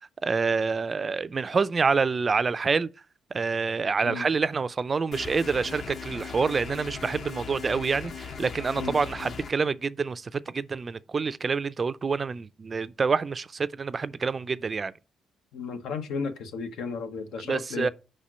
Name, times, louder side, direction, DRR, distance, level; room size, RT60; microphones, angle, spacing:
voice 1, 0.2-2.9 3.3-14.9 17.5-17.9, right 4 dB, 35° right, 0.4 m, -27 dB
sound 1, 5.1-9.5, left 6 dB, 60° left, 0.8 m, -39 dB
voice 2, 15.5-17.9, left 5 dB, 85° left, 0.9 m, -34 dB
5.0 x 4.3 x 6.1 m
cardioid pair, 90°, 0 cm